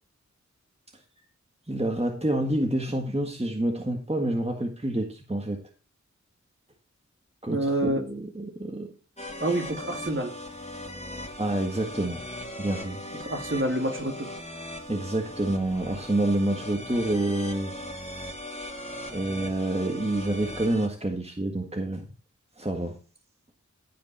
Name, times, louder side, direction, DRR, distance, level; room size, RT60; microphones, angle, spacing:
voice 1, 1.7-5.6 7.4-8.9 11.4-12.2 12.6-13.0 14.9-17.7 19.1-22.1 22.6-23.0, right 1 dB, 20° right, 3 dB, 1.7 m, -28 dB
voice 2, 7.5-8.0 9.4-10.3 13.3-14.3, right 1 dB, 45° right, 3 dB, 2.7 m, -27 dB
sound 1, 9.2-20.9, left 1 dB, 20° left, 2.5 m, -39 dB
15.5 x 5.2 x 4.3 m, 0.34 s
wide cardioid pair, 50°, 30 cm